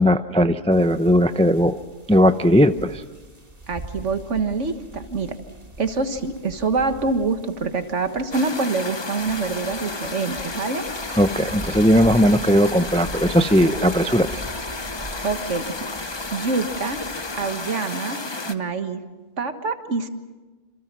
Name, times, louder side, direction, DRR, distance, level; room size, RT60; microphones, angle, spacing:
voice 1, 0.0-1.8 2.1-3.0 11.2-14.4, equal, 5° left, 10 dB, 0.5 m, -18 dB
sound 1, 0.7-17.6, right 1 dB, 30° right, 2.9 m, -42 dB
voice 2, 3.7-5.4 5.8-10.8 15.2-15.6 16.3-17.0 17.3-18.2 18.5-19.0 19.4-20.1, right 4 dB, 65° right, 8 dB, 1.8 m, -25 dB
sound 2, 8.3-18.5, left 3 dB, 25° left, 0.9 m, -32 dB
28.0 x 27.0 x 6.1 m, 1.3 s
omnidirectional pair, 1.3 m